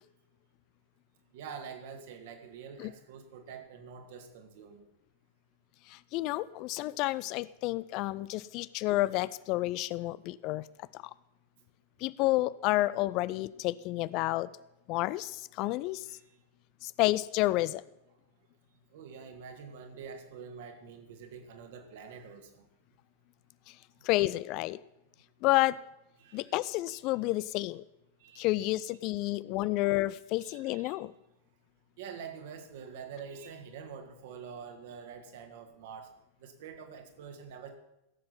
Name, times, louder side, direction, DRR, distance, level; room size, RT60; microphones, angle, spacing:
voice 1, 1.3-4.8 16.1-16.4 18.9-22.7 26.2-26.5 26.9-27.0 28.2-28.7 30.4-31.0 32.0-36.1 36.4-37.7, right 6 dB, 55° right, 6 dB, 1.8 m, -46 dB
voice 2, 5.9-10.7 10.9-11.0 12.0-14.5 14.9-16.1 16.8-17.8 23.7-23.8 24.0-24.8 25.4-25.8 26.3-27.8 28.4-31.1, left 18 dB, 40° left, 19 dB, 0.3 m, -30 dB
16.5 x 7.5 x 5.7 m, 0.88 s
figure-of-eight pair, 90°, 0 cm